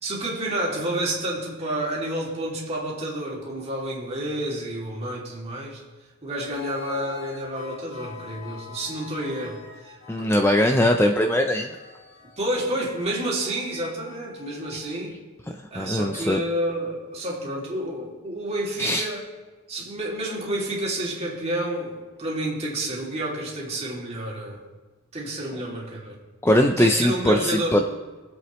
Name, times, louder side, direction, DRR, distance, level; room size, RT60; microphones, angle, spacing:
voice 1, 0.0-5.8 6.2-10.4 12.4-15.2 15.7-19.2 19.7-24.6 25.1-26.2 26.8-27.8, right 1 dB, 30° right, -3 dB, 2.7 m, -29 dB
sound 1, 6.5-14.9, left 5 dB, 65° left, 3.2 m, -44 dB
voice 2, 10.1-11.8 15.8-16.4 18.8-19.1 26.4-27.8, left 1 dB, 10° left, 4 dB, 0.5 m, -20 dB
24.0 x 8.0 x 3.1 m, 1.3 s
head